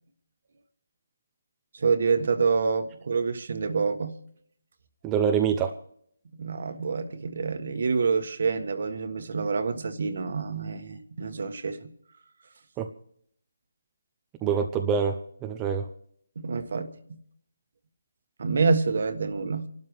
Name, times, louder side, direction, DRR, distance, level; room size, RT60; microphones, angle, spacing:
voice 1, 1.7-4.2 6.4-11.9 16.3-17.2 18.4-19.7, right 5 dB, 55° right, 9 dB, 1.5 m, -27 dB
voice 2, 5.0-5.7 12.8-12.9 14.4-15.9, right 7 dB, 15° right, 4 dB, 0.6 m, -25 dB
28.0 x 12.5 x 3.2 m, 0.67 s
figure-of-eight pair, 165°, 0 cm